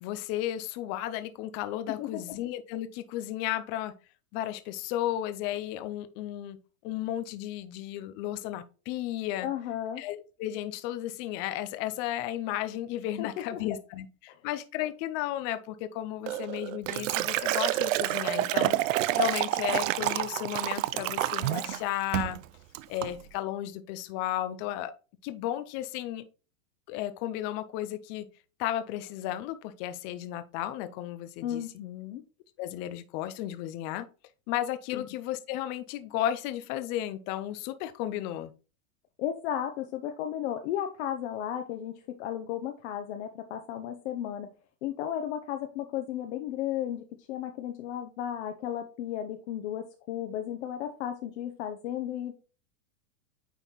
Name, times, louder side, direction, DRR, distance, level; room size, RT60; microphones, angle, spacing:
voice 1, 0.0-4.0 4.3-9.5 10.0-22.4 22.9-24.9 25.2-26.2 26.9-28.3 28.6-31.6 32.6-34.1 34.5-38.5, left 12 dB, 25° left, 12 dB, 0.4 m, -34 dB
voice 2, 9.4-10.0 13.2-13.6 31.4-32.2 34.9-35.1 39.2-44.5 44.8-52.3, left 10 dB, 50° left, 5 dB, 0.9 m, -34 dB
Liquid, 16.3-21.8 22.1-22.4 22.7-23.1, right 15 dB, 60° right, 0.6 m, -28 dB
9.0 x 4.1 x 3.0 m, 0.35 s
supercardioid pair, 145°, 43 cm